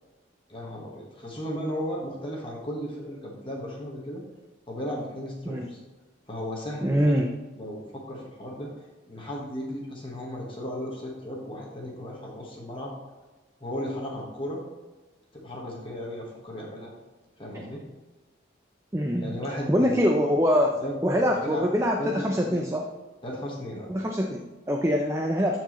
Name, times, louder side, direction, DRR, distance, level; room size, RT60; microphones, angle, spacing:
voice 1, 0.5-4.2 4.7-5.8 6.3-7.2 7.6-8.7 9.0-12.9 13.6-14.6 15.3-16.9 17.4-17.8 19.2-20.0 20.8-21.7 22.0-22.6 23.2-23.9, equal, 25° left, -2 dB, 1.4 m, -35 dB
voice 2, 6.8-7.3 17.5-17.6 18.9-19.4 19.7-22.8 23.9-25.6, equal, 15° right, 2 dB, 0.5 m, -24 dB
12.5 x 4.6 x 3.1 m, 1.2 s
head